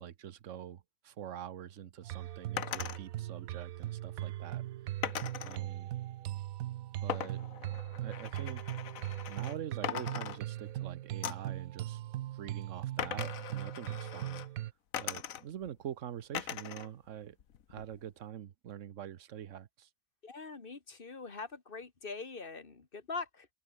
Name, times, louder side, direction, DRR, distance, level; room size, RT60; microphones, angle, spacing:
voice 1, 0.0-4.6 5.4-5.9 7.0-7.4 8.0-8.6 9.3-12.0 12.3-14.5 15.0-17.4 17.7-19.9, right 10 dB, 65° right, 1.2 m, -45 dB
sound 1, 2.0-14.7, right 14 dB, 85° right, 1.1 m, -40 dB
sound 2, 2.6-3.0 5.0-5.6 7.1-9.6 9.8-10.8 11.2-11.6 13.0-14.5 14.9-15.7 16.3-16.9 17.2-18.0, left 9 dB, 80° left, 1.4 m, -40 dB
voice 2, 20.2-23.5, left 4 dB, 40° left, 1.9 m, -43 dB
omnidirectional pair, 1.4 m